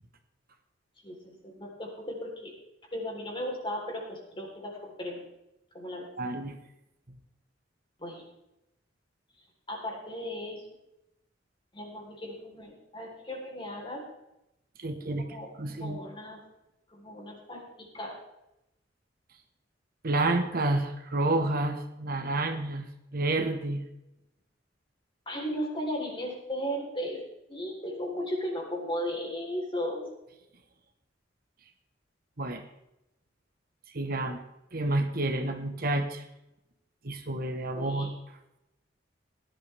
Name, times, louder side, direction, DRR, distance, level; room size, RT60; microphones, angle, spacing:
voice 1, 1.0-2.6 2.9-5.2 5.7-6.1 8.0-8.3 9.7-10.6 11.7-14.0 15.2-16.4 16.9-18.2 25.3-27.2 27.5-30.1 37.7-38.1, equal, 30° left, 0 dB, 3.8 m, -36 dB
voice 2, 6.2-6.6 14.8-15.2 15.6-16.0 20.0-22.9 23.1-23.8 32.4-32.6 33.9-34.4 34.7-36.2 37.0-38.1, right 2 dB, 55° right, 6 dB, 1.3 m, -29 dB
17.5 x 11.5 x 3.5 m, 0.88 s
head